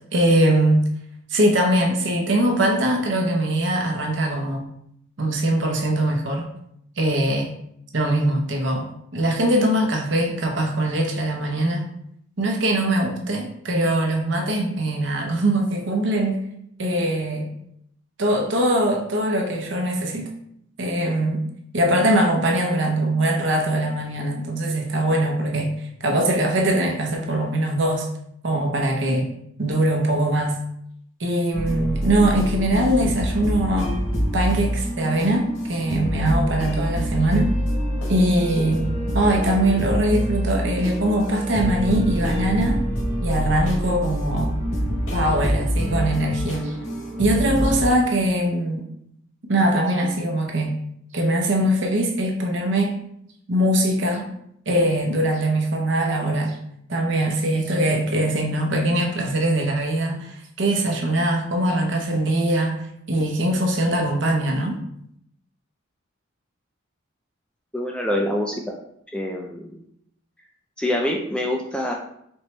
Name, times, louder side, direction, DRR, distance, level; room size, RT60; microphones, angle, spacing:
voice 1, 0.1-0.9 1.3-4.7 5.2-6.5 7.0-7.5 7.9-11.9 12.4-16.4 16.8-17.5 18.2-20.3 20.8-21.4 21.7-25.7 26.0-28.1 28.4-29.3 29.6-30.6 31.2-34.0 34.3-37.5 38.1-38.9 39.1-42.8 43.2-44.5 45.1-46.7 47.2-48.9 49.5-50.8 51.1-53.0 53.5-54.3 54.7-56.6 56.9-62.8 63.1-64.8, right 1 dB, 60° right, 2 dB, 0.8 m, -22 dB
sound 1, 31.5-47.9, equal, 80° left, 1.5 m, -25 dB
voice 2, 67.7-68.8 69.1-69.8 70.8-71.9, left 1 dB, 5° left, 0 dB, 0.3 m, -25 dB
4.4 x 3.0 x 3.2 m, 0.72 s
head